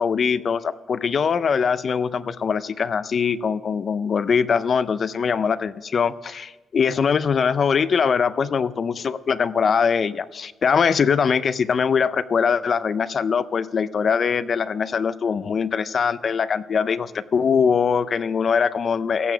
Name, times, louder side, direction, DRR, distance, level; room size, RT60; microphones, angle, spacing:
voice 1, 0.0-19.3, left 6 dB, 40° left, 16 dB, 0.4 m, -22 dB
15.5 x 6.9 x 6.8 m, 1.2 s
cardioid pair, 140°, 0 cm